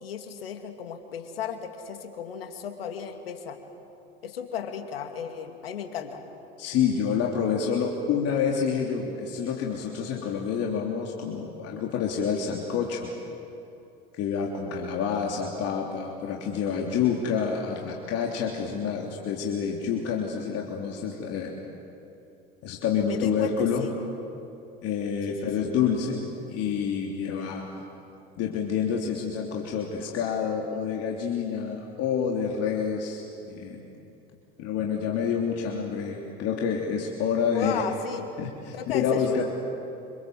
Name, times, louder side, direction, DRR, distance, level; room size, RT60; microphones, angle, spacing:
voice 1, 0.0-3.6 4.2-6.2 23.0-23.9 25.3-25.7 37.5-38.3 38.7-39.4, left 7 dB, 85° left, 6 dB, 2.4 m, -35 dB
voice 2, 6.6-13.1 14.2-21.6 22.6-23.8 24.8-27.6 28.4-33.8 34.6-37.8 38.4-39.4, left 7 dB, 55° left, -1 dB, 3.4 m, -28 dB
27.0 x 27.0 x 7.9 m, 2.8 s
hypercardioid pair, 75°, 29 cm